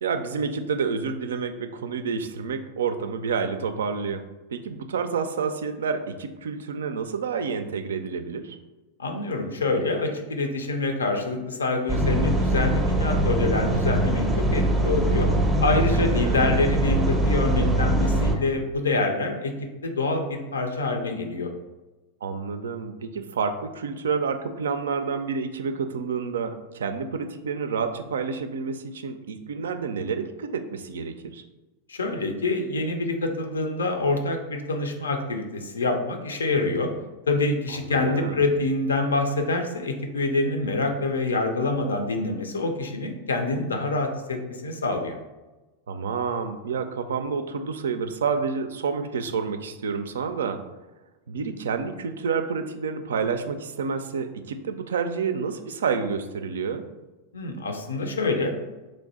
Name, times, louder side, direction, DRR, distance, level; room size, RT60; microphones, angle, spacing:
voice 1, 0.0-8.6 15.9-16.4 22.2-31.4 37.7-38.5 45.9-50.6 51.3-56.9, right 5 dB, 65° right, 8 dB, 0.3 m, -29 dB
voice 2, 9.0-15.3 15.6-19.5 19.8-21.5 31.9-36.9 37.3-45.2 57.3-58.5, left 3 dB, 70° left, 5 dB, 0.5 m, -26 dB
sound 1, 11.9-18.3, right 1 dB, 10° right, 0.6 m, -22 dB
3.2 x 2.6 x 4.0 m, 1.1 s
figure-of-eight pair, 90°, 0 cm